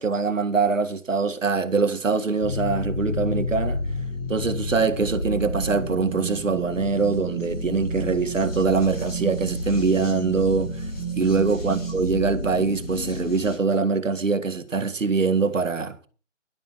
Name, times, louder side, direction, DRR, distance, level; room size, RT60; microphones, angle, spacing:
voice 1, 0.0-3.9 4.3-10.8 11.2-16.1, right 4 dB, 75° right, 1.9 m, -23 dB
sound 1, 2.4-13.6, equal, 30° left, 7.2 m, -30 dB
11.5 x 10.5 x 5.9 m
hypercardioid pair, 170°, 38 cm